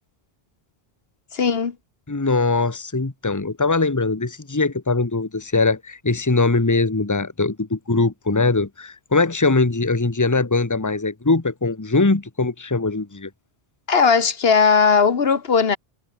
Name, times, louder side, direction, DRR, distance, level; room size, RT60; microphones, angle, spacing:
voice 1, 1.3-1.7 13.9-15.8, left 5 dB, 75° left, 1.5 m, -17 dB
voice 2, 2.1-13.3, left 3 dB, 20° left, 1.3 m, -21 dB
omnidirectional pair, 1.0 m